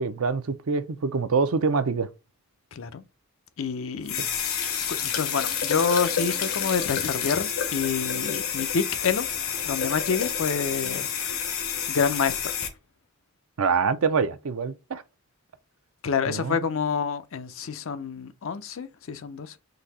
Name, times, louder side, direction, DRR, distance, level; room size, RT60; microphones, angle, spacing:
voice 1, 0.0-2.1 13.6-15.0 16.3-16.6, right 5 dB, 85° right, 0.5 m, -25 dB
voice 2, 2.7-3.0 3.6-4.4 4.9-9.3 9.6-11.4 11.9-12.3 16.0-19.6, left 5 dB, 70° left, 0.5 m, -28 dB
sound 1, 4.0-12.7, left 8 dB, 85° left, 1.0 m, -29 dB
3.9 x 2.7 x 4.1 m
head